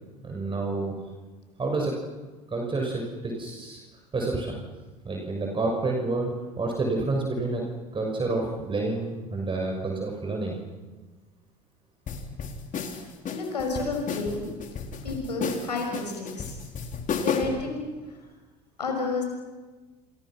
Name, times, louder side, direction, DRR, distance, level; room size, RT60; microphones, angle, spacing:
voice 1, 0.2-0.9 1.6-1.9 2.5-3.8 4.1-4.5 5.0-7.6 7.9-10.6, right 3 dB, 25° right, 1 dB, 6.4 m, -29 dB
sound 1, 12.1-17.7, left 5 dB, 40° left, 3.8 m, -33 dB
voice 2, 13.3-14.5 15.0-16.5 17.2-17.8 18.8-19.2, left 3 dB, 90° left, 2 dB, 6.1 m, -30 dB
28.5 x 28.5 x 6.3 m, 1.3 s
hypercardioid pair, 70°, 21 cm